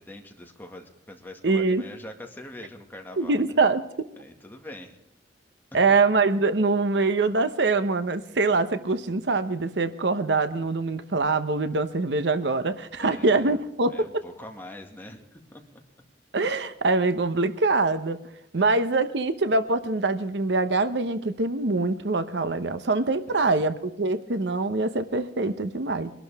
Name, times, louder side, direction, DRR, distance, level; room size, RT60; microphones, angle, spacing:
voice 1, 0.0-3.5 4.2-5.0 13.0-13.6 13.9-15.6 18.6-18.7 23.3-23.5, left 1 dB, 10° left, 2 dB, 2.0 m, -43 dB
voice 2, 1.4-1.8 3.2-3.8 5.7-13.9 16.3-18.2 18.5-26.1, right 3 dB, 70° right, 11 dB, 0.9 m, -24 dB
22.5 x 12.0 x 3.5 m, 0.84 s
head